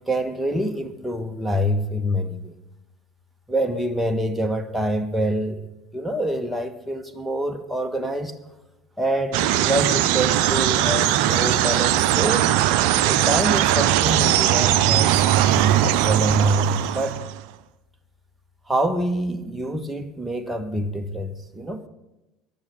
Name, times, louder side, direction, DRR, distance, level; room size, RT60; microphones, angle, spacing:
voice 1, 0.0-2.5 3.5-5.7 5.9-8.4 9.0-12.5 13.1-15.2 15.5-17.2 18.7-21.9, equal, 5° right, 6 dB, 1.5 m, -26 dB
sound 1, 9.3-17.4, right 12 dB, 60° right, 0.6 m, -20 dB
15.5 x 11.0 x 6.4 m, 0.96 s
figure-of-eight pair, 70°, 0 cm